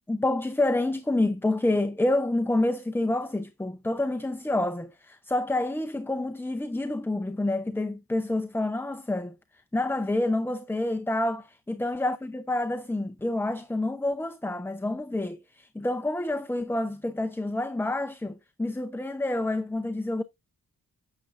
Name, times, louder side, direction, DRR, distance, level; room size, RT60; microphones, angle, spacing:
voice 1, 0.1-9.3 9.7-20.2, left 2 dB, 5° left, 0.6 m, -28 dB
9.0 x 6.9 x 2.5 m
wide cardioid pair, 95°, 36 cm